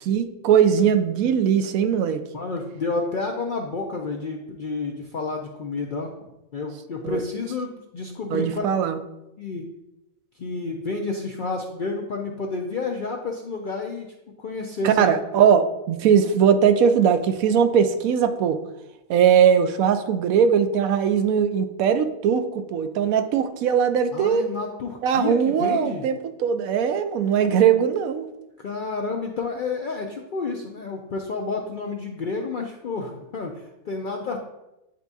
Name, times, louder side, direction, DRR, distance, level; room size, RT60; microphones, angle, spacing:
voice 1, 0.1-2.2 7.0-7.2 8.3-9.0 14.8-18.6 19.1-24.4 25.0-28.3, right 7 dB, 80° right, 8 dB, 1.0 m, -20 dB
voice 2, 2.3-6.1 6.5-8.7 9.4-9.7 10.4-14.1 14.4-15.1 24.1-26.1 28.6-34.4, left 3 dB, 65° left, 1 dB, 0.5 m, -30 dB
10.0 x 3.4 x 2.7 m, 0.93 s
omnidirectional pair, 1.5 m